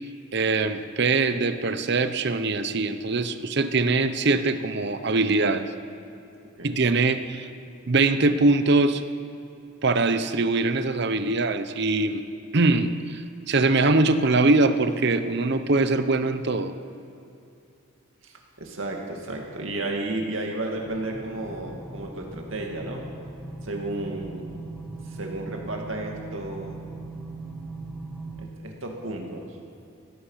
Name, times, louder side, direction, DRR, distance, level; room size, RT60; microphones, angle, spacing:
voice 1, 0.3-5.7 6.6-7.5 7.9-9.0 9.8-12.2 12.5-16.7, right 3 dB, 50° right, 10 dB, 0.8 m, -22 dB
voice 2, 18.2-23.0 23.6-24.5 25.0-26.8 28.4-29.5, right 2 dB, 65° right, 1 dB, 2.3 m, -33 dB
sound 1, 20.8-28.4, right 2 dB, 5° left, 1.2 m, -39 dB
17.0 x 13.0 x 5.7 m, 2.7 s
head